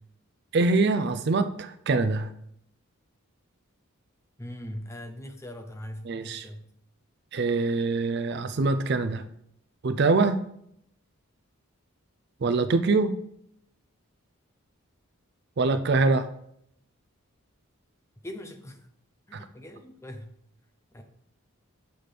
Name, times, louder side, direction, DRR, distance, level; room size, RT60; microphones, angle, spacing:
voice 1, 0.5-2.3 6.1-6.5 7.3-9.2 9.8-10.4 12.4-13.1 15.6-16.3 19.3-19.4, right 3 dB, 50° right, 10 dB, 0.4 m, -24 dB
voice 2, 4.4-6.6 18.2-18.9 19.3-20.3 20.9-21.0, left 1 dB, 15° left, 4 dB, 0.6 m, -41 dB
6.8 x 5.9 x 3.3 m, 0.71 s
head